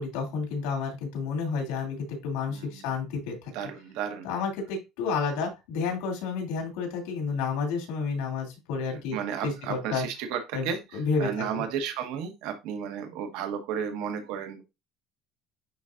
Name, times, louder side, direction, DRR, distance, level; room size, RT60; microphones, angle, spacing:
voice 1, 0.0-3.5 4.2-9.2 9.4-10.0 10.5-11.6, left 5 dB, 90° left, 2 dB, 2.8 m, -30 dB
voice 2, 2.5-3.1 3.5-4.3 9.1-14.6, right 8 dB, 70° right, 5 dB, 1.3 m, -33 dB
10.0 x 3.7 x 2.5 m, 0.24 s
cardioid pair, 155°, 0 cm